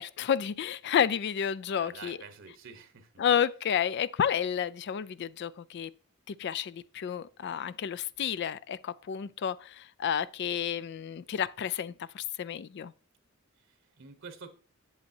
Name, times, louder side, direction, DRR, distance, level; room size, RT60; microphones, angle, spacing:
voice 1, 0.0-2.2 3.2-5.9 6.3-12.9, left 8 dB, 55° left, 0.3 m, -31 dB
voice 2, 1.7-3.2 13.6-14.5, right 4 dB, 65° right, 1.0 m, -48 dB
8.1 x 8.1 x 2.7 m
head